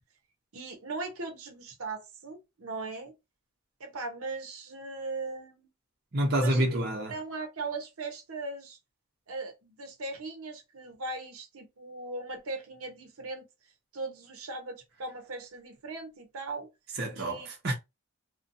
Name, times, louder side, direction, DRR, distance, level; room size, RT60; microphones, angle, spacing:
voice 1, 0.5-3.1 3.8-5.7 6.3-6.8 7.1-8.8 9.3-13.5 13.9-16.7 17.1-17.5, right 3 dB, 85° right, 0.7 m, -39 dB
voice 2, 6.1-7.1 17.0-17.7, right 1 dB, 45° right, 0.7 m, -28 dB
2.6 x 2.2 x 2.5 m
head